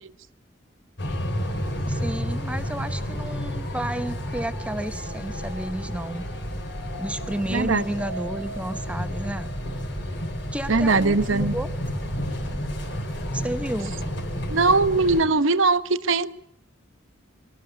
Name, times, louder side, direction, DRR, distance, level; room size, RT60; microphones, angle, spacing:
sound 1, 1.0-15.2, equal, 60° left, 4.9 m, -31 dB
voice 1, 1.9-6.3 7.0-9.5 10.5-11.7 13.3-13.9, right 1 dB, 5° right, 10 dB, 1.0 m, -32 dB
voice 2, 7.5-7.8 10.7-11.5 14.5-16.3, right 3 dB, 75° right, 12 dB, 1.0 m, -20 dB
25.5 x 14.0 x 8.3 m, 0.75 s
head